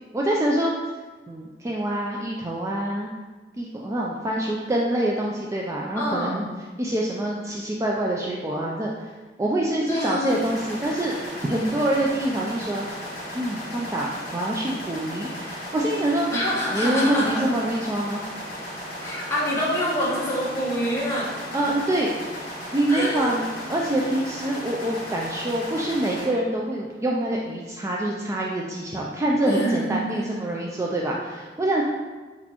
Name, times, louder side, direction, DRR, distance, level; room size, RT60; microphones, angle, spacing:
voice 1, 0.1-0.7 1.3-3.1 3.6-6.5 6.8-11.1 11.4-12.9 13.3-16.3 16.7-18.2 21.5-22.1 22.7-31.8, right 1 dB, 15° right, -2 dB, 0.3 m, -25 dB
voice 2, 5.9-6.5 9.9-10.4 16.3-17.4 19.0-21.3 22.9-23.4 29.4-30.4, equal, 15° left, -7 dB, 1.1 m, -26 dB
sound 1, 10.3-26.3, equal, 55° left, 1.2 m, -36 dB
4.2 x 4.2 x 2.9 m, 1.3 s
head